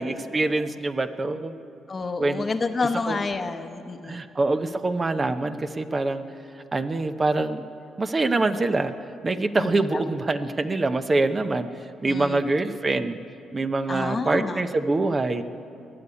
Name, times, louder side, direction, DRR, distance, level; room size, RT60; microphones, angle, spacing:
voice 1, 0.0-1.6 2.2-2.4 2.9-3.2 4.0-6.2 6.7-7.6 8.0-8.9 9.2-13.2 13.5-15.4, right 2 dB, 30° right, 10 dB, 0.6 m, -25 dB
voice 2, 1.9-4.2 9.6-10.0 12.0-12.4 13.9-14.6, left 4 dB, 35° left, 8 dB, 0.9 m, -29 dB
20.5 x 6.9 x 9.7 m, 2.6 s
cardioid pair, 90°, 0 cm